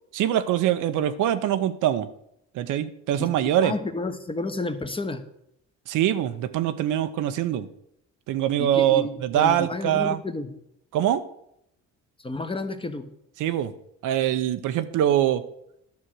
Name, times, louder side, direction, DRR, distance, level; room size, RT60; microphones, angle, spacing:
voice 1, 0.1-2.1 2.5-3.7 5.9-7.7 8.3-10.2 10.9-11.2 13.4-13.7 14.0-15.4, right 11 dB, 90° right, 10 dB, 0.8 m, -23 dB
voice 2, 3.6-5.2 8.6-9.1 9.4-10.5 12.2-13.1, left 2 dB, 15° left, 7 dB, 1.1 m, -31 dB
10.5 x 6.3 x 6.2 m, 0.75 s
cardioid pair, 90°, 30 cm